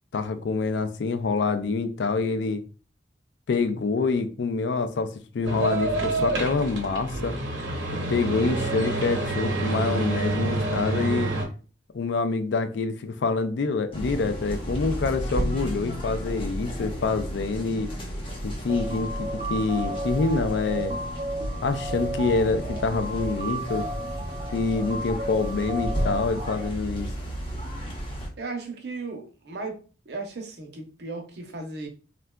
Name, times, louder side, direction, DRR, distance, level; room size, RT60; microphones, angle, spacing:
voice 1, 0.1-2.6 3.5-7.4 8.1-11.3 11.9-17.9 18.4-20.9 21.6-23.9 24.5-27.1, left 4 dB, 75° left, 0.4 m, -26 dB
sound 1, 5.4-11.5, right 2 dB, 85° right, 0.8 m, -27 dB
sound 2, 13.9-28.3, equal, 30° left, 0.7 m, -33 dB
sound 3, 18.7-26.7, right 1 dB, 35° right, 0.3 m, -34 dB
voice 2, 28.4-29.8 30.1-31.9, right 3 dB, 65° right, 0.7 m, -35 dB
3.6 x 2.2 x 2.2 m
head